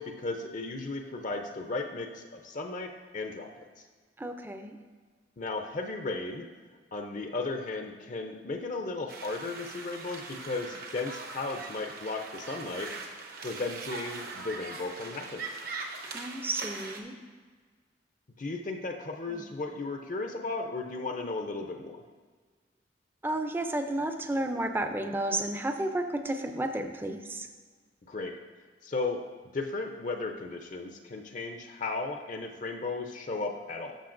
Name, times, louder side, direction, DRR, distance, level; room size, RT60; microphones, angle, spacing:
voice 1, 0.0-3.8 5.4-6.5 6.9-12.9 13.4-15.5 18.4-22.0 28.1-28.4 28.8-29.2 29.5-34.0, left 3 dB, 45° left, 4 dB, 0.5 m, -35 dB
voice 2, 4.2-4.8 16.0-17.1 19.3-19.5 23.2-27.5, right 1 dB, 10° right, 7 dB, 0.5 m, -32 dB
sound 1, 9.1-17.0, right 4 dB, 55° right, 0.8 m, -41 dB
11.5 x 6.7 x 2.5 m, 1.5 s
head